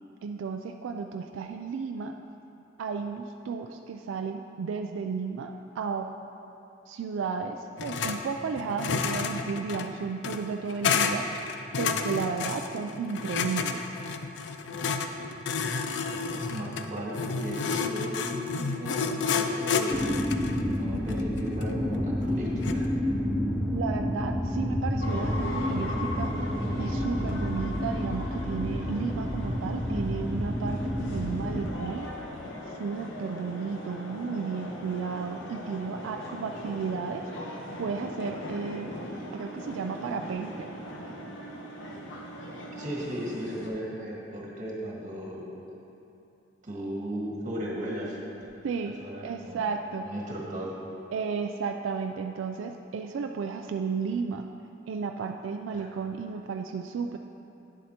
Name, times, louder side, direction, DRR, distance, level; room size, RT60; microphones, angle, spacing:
voice 1, 0.2-2.1 2.8-6.1 6.9-11.2 11.8-13.8 23.7-26.4 26.8-32.1 32.8-38.9 39.3-40.7 48.6-49.0 49.2-50.1 51.1-54.5 54.9-57.2, right 5 dB, 90° right, 5 dB, 0.3 m, -33 dB
sound 1, 7.8-8.2 8.5-22.9, left 5 dB, 65° left, 0.4 m, -30 dB
voice 2, 16.3-20.0 20.7-22.9 42.7-45.5 46.6-48.5 48.9-49.6 50.0-50.8 55.7-55.9, equal, 40° right, -4 dB, 1.5 m, -36 dB
sound 2, 19.9-31.7, left 1 dB, 5° left, 0.5 m, -30 dB
sound 3, 25.0-43.7, left 1 dB, 80° left, 1.0 m, -39 dB
10.0 x 7.5 x 2.9 m, 2.8 s
head